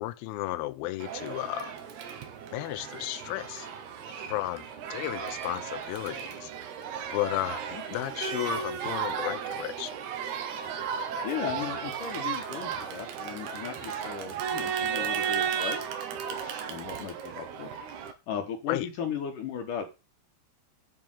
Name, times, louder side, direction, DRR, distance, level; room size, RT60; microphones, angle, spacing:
voice 1, 0.0-1.7 2.5-3.7 4.2-6.5 7.1-7.6 7.9-9.9 18.7-18.9, left 16 dB, 80° left, 2.2 m, -33 dB
Crowd, 1.0-18.1, right 7 dB, 75° right, 3.2 m, -35 dB
voice 2, 11.2-16.1 16.4-19.9, left 8 dB, 60° left, 2.5 m, -37 dB
8.6 x 5.2 x 7.4 m
omnidirectional pair, 4.8 m